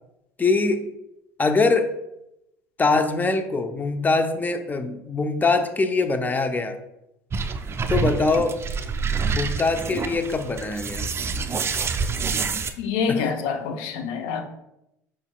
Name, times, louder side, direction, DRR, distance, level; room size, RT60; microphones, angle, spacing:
voice 1, 0.4-0.9 1.4-1.9 2.8-6.8 7.9-8.6 9.3-11.1 13.1-13.2, left 3 dB, 20° left, 8 dB, 0.5 m, -23 dB
sound 1, 7.3-12.7, right 5 dB, 30° right, 0.4 m, -27 dB
voice 2, 12.8-14.4, left 6 dB, 70° left, 5 dB, 0.6 m, -26 dB
4.9 x 4.0 x 2.3 m, 0.86 s
hypercardioid pair, 75°, 8 cm